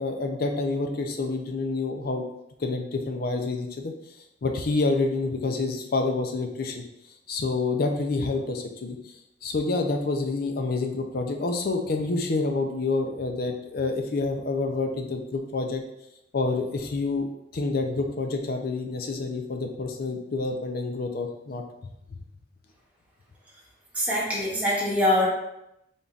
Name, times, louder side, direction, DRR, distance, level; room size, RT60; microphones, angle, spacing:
voice 1, 0.0-2.3 2.6-3.9 4.4-6.8 7.3-9.0 9.4-15.8 16.3-17.3 17.5-21.6, left 3 dB, 55° left, 4 dB, 0.5 m, -28 dB
voice 2, 24.0-25.3, left 1 dB, 10° right, -6 dB, 1.0 m, -23 dB
4.0 x 3.6 x 2.4 m, 0.84 s
head